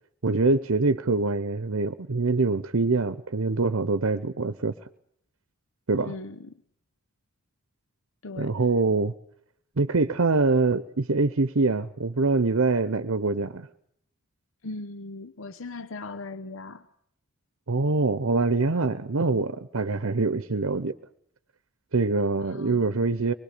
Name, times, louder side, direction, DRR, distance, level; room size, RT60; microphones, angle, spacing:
voice 1, 0.2-4.7 5.9-6.1 8.4-9.1 9.8-13.7 17.7-20.9 21.9-23.3, right 3 dB, 75° right, 12 dB, 0.8 m, -24 dB
voice 2, 6.0-6.6 8.2-8.6 14.6-16.9 22.4-22.9, left 3 dB, 65° left, 12 dB, 0.9 m, -39 dB
24.5 x 21.0 x 6.8 m, 0.70 s
head